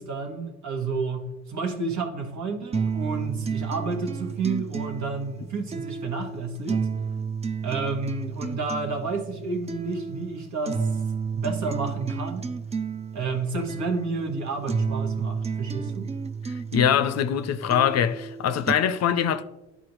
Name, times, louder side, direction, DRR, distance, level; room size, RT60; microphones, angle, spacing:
voice 1, 0.0-6.9 7.6-10.9 11.3-12.5 13.1-16.1, right 4 dB, 70° right, 1.3 m, -30 dB
sound 1, 2.7-18.7, right 5 dB, 20° right, 0.4 m, -31 dB
voice 2, 16.4-19.4, left 9 dB, 60° left, 0.5 m, -23 dB
11.0 x 4.1 x 3.0 m
cardioid pair, 90°, 30 cm